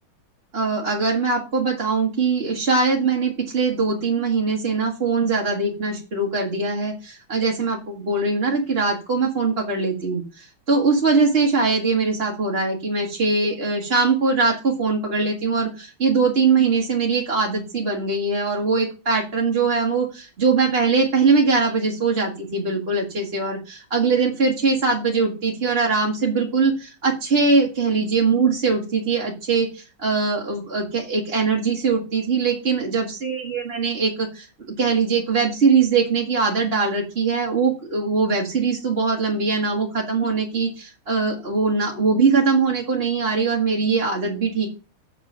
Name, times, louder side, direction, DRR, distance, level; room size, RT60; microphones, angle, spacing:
voice 1, 0.5-34.5 34.8-44.8, right 4 dB, 30° right, -2 dB, 1.7 m, -21 dB
8.0 x 5.6 x 6.2 m, 0.32 s
omnidirectional pair, 2.1 m